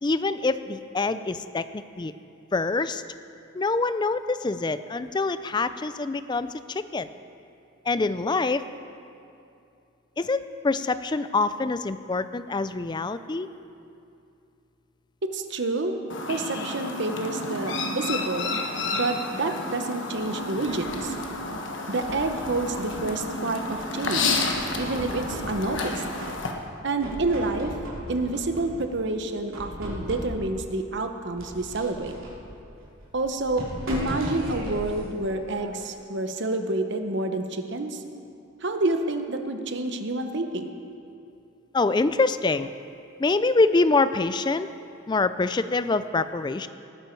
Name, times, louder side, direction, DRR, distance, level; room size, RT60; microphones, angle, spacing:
voice 1, 0.0-2.1 2.5-3.0 3.5-7.1 7.9-8.6 10.2-13.5 41.7-42.7 43.2-44.7 45.1-46.7, left 3 dB, 20° left, 13 dB, 0.4 m, -25 dB
voice 2, 15.3-16.0 16.3-18.6 18.9-21.1 21.9-24.4 24.8-26.0 26.8-27.7 28.1-32.1 33.1-38.0 38.6-40.8, right 2 dB, 55° right, 7 dB, 0.9 m, -28 dB
Chirp tweet, 16.1-26.5, left 2 dB, 60° left, 1.3 m, -31 dB
sound 1, 20.2-21.4 21.9-23.3 23.7-25.9 26.2-26.7 27.0-29.0 29.5-30.6 31.4-35.9, equal, 75° right, 3.5 m, -38 dB
19.0 x 10.0 x 4.6 m, 2.6 s
head